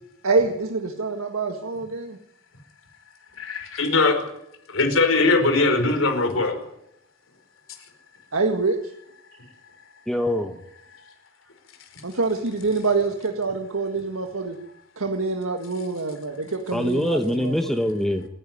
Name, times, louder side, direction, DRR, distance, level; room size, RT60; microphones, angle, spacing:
voice 1, 0.2-2.2 8.3-8.8 12.0-14.6 15.0-17.5, right 3 dB, 85° right, 4 dB, 1.9 m, -25 dB
voice 2, 3.4-4.1 4.7-6.5, left 3 dB, 70° left, 5 dB, 5.0 m, -20 dB
voice 3, 10.1-10.6 16.7-18.3, equal, ahead, 6 dB, 1.1 m, -24 dB
28.0 x 11.0 x 9.4 m, 0.80 s
head